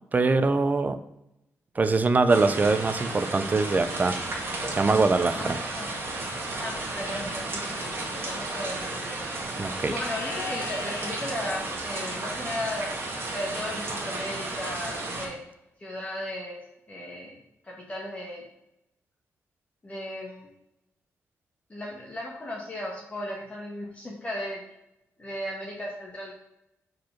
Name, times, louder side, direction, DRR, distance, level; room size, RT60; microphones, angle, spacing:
voice 1, 0.1-1.0 1.8-4.2 4.8-5.6 9.6-9.9, right 3 dB, 30° right, 10 dB, 0.6 m, -23 dB
sound 1, 2.3-15.3, right 2 dB, 45° right, 1.8 m, -33 dB
voice 2, 5.3-5.8 6.6-9.2 9.8-12.9 13.3-15.4 15.8-16.6 16.9-17.4 17.6-18.4 19.8-20.5 21.7-24.6 25.2-26.3, left 1 dB, 25° left, -4 dB, 1.6 m, -35 dB
Livestock farm animals working animals, 10.1-11.1 14.0-14.9, left 3 dB, 80° left, 2.7 m, -39 dB
4.7 x 4.7 x 5.8 m, 0.84 s
cardioid pair, 100°, 5 cm